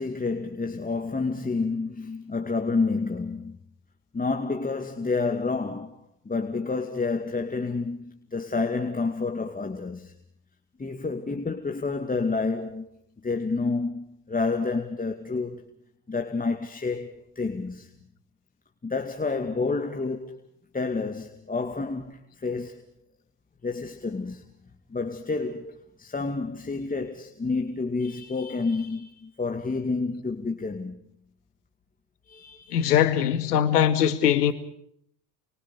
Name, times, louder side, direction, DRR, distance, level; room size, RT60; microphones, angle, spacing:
voice 1, 0.0-3.6 4.1-10.1 10.8-12.9 13.2-15.6 16.1-17.9 18.8-20.4 20.7-22.9 23.6-24.4 24.9-31.0 32.3-33.3, left 4 dB, 20° left, 2.4 m, -29 dB
voice 2, 32.7-34.5, left 10 dB, 90° left, 2.2 m, -21 dB
29.5 x 24.5 x 4.9 m
hypercardioid pair, 70°, 46 cm